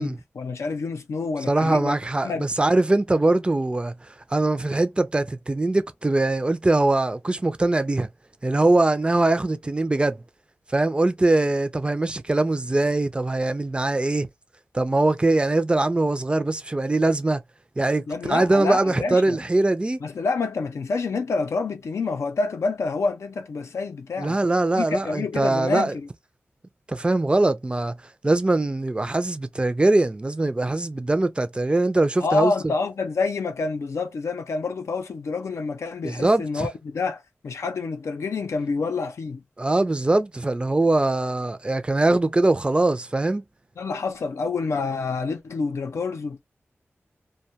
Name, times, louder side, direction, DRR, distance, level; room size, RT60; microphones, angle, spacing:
voice 1, 0.0-2.0 2.2-2.5 18.1-19.4 20.0-24.4 24.8-26.1 32.2-39.4 43.8-46.4, left 4 dB, 85° left, 0.5 m, -27 dB
voice 2, 1.4-3.9 4.3-8.1 8.4-10.2 10.7-14.3 14.7-17.4 17.8-20.0 24.2-25.9 26.9-27.9 28.2-32.5 36.0-36.7 39.6-43.4, right 2 dB, 20° right, 0.4 m, -22 dB
2.3 x 2.2 x 2.7 m
wide cardioid pair, 110°, 5 cm